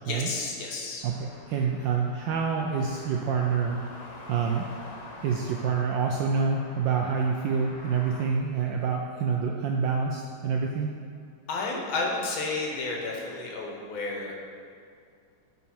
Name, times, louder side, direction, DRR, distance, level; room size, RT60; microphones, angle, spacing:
voice 1, 0.0-1.0 11.5-14.3, left 3 dB, 65° left, -2 dB, 1.8 m, -31 dB
sound 1, 1.0-8.3, left 2 dB, 85° left, 2.0 m, -46 dB
voice 2, 1.0-3.8 4.3-4.7 5.2-10.9, right 5 dB, 75° right, 1 dB, 1.0 m, -27 dB
9.5 x 4.2 x 4.3 m, 2.3 s
omnidirectional pair, 2.4 m